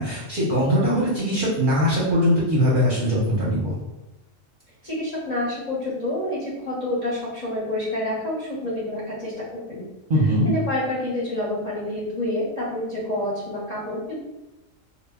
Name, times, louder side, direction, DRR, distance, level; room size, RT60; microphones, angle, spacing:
voice 1, 0.0-3.7 10.1-10.5, equal, 50° right, -7 dB, 0.7 m, -21 dB
voice 2, 4.8-9.9 10.4-14.2, left 1 dB, 40° left, -7 dB, 0.6 m, -28 dB
2.1 x 2.1 x 3.4 m, 0.97 s
omnidirectional pair, 1.3 m